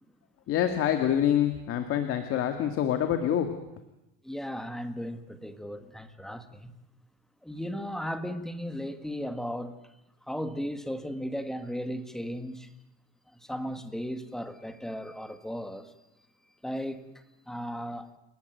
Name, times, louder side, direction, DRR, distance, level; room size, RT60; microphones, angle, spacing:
voice 1, 0.5-3.6, left 10 dB, 40° left, 2.2 m, -26 dB
voice 2, 4.2-6.7 7.4-9.7 10.3-12.7 13.4-15.9 16.6-17.1 17.5-18.1, equal, ahead, 1.6 m, -36 dB
29.5 x 18.5 x 9.3 m
cardioid pair, 160°, 33 cm